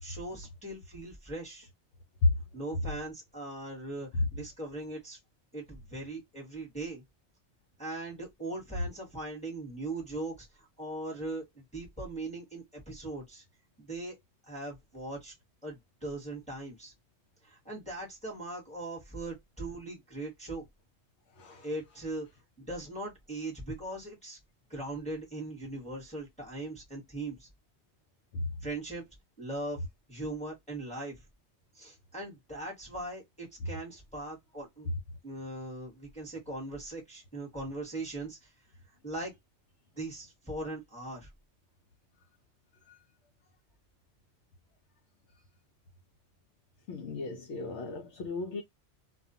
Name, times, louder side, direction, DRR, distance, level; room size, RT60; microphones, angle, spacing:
voice 1, 0.0-1.7 2.5-5.2 5.5-7.0 7.8-13.4 13.8-14.2 14.5-15.3 15.6-16.9 17.4-20.7 21.6-22.3 22.6-24.4 24.7-27.5 28.6-29.1 29.4-29.8 30.1-31.2 31.7-34.9 35.2-38.5 39.0-39.3 40.0-41.3, right 2 dB, 5° left, 1.0 m, -40 dB
voice 2, 46.9-48.6, left 2 dB, 80° left, 0.8 m, -31 dB
2.4 x 2.2 x 2.6 m
omnidirectional pair, 1.1 m